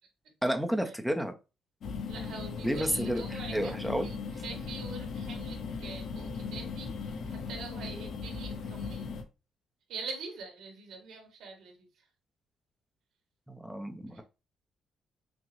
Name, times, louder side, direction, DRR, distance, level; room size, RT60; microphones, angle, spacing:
voice 1, 0.4-1.3 2.6-4.1 13.5-14.2, equal, ahead, 5 dB, 0.5 m, -31 dB
sound 1, 1.8-9.2, left 5 dB, 55° left, 0.7 m, -38 dB
voice 2, 2.1-3.8 4.0-4.2 4.4-9.1 9.9-12.1 14.1-14.2, right 4 dB, 85° right, 0 dB, 1.8 m, -44 dB
6.0 x 2.0 x 3.1 m, 0.29 s
cardioid pair, 165°, 0 cm